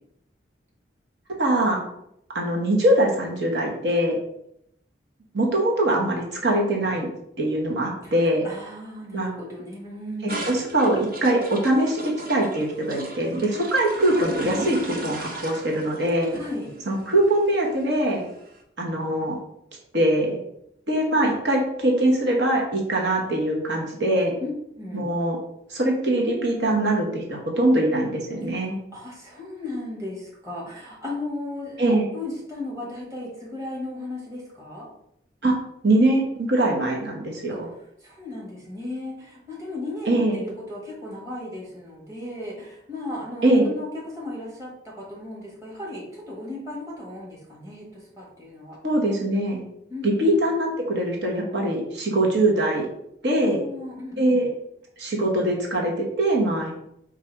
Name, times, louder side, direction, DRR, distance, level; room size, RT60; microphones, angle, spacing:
voice 1, 1.4-1.8 2.3-4.2 5.3-7.1 7.4-8.5 9.1-9.3 10.5-16.3 16.9-18.2 18.8-19.4 19.9-20.4 20.9-24.3 24.9-25.4 25.7-28.7 31.8-32.0 35.4-35.6 35.8-37.7 40.1-40.4 43.4-43.7 48.8-49.6 50.0-52.9 53.2-53.6 54.2-54.5 55.0-56.7, right 1 dB, 70° right, -1 dB, 1.0 m, -22 dB
voice 2, 8.0-10.5 16.3-16.7 24.4-25.1 28.9-34.9 37.5-37.6 38.0-48.8 49.9-50.3 53.4-54.5, left 2 dB, 15° right, -5 dB, 1.3 m, -36 dB
sound 1, 10.3-18.5, right 1 dB, 50° right, 0.8 m, -36 dB
4.7 x 2.5 x 4.4 m, 0.76 s
head